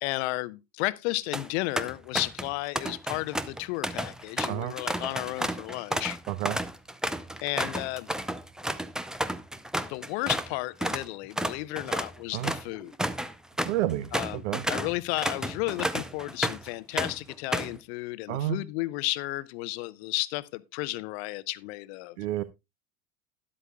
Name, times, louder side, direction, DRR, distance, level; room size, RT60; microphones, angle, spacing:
voice 1, 0.0-6.2 7.4-8.1 9.9-12.9 14.1-22.2, left 20 dB, 50° left, 0.8 m, -33 dB
sound 1, 1.1-1.5 1.8-2.5 2.8-10.5 10.8-11.1 11.4-16.7 17.0-17.8, right 1 dB, ahead, 0.6 m, -32 dB
voice 2, 6.3-6.6 12.3-12.5 13.6-14.7 18.3-18.6 22.2-22.4, right 13 dB, 60° right, 0.7 m, -30 dB
12.5 x 11.0 x 2.3 m
figure-of-eight pair, 75°, 41 cm